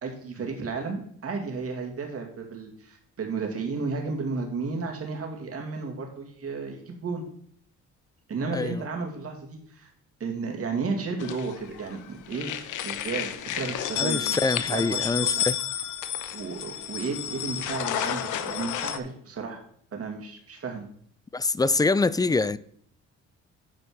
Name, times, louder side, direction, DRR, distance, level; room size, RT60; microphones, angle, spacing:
voice 1, 0.0-7.2 8.3-9.9 10.2-12.5 12.8-14.2 14.7-15.5 16.3-19.6 19.9-20.9, right 4 dB, 50° right, 2.4 m, -33 dB
sound 1, 11.2-12.0 12.3-19.0, left 10 dB, 80° left, 0.9 m, -31 dB
voice 2, 14.0-15.6 21.3-22.6, left 3 dB, 15° left, 0.4 m, -25 dB
9.1 x 4.3 x 6.4 m
cardioid pair, 90°, 30 cm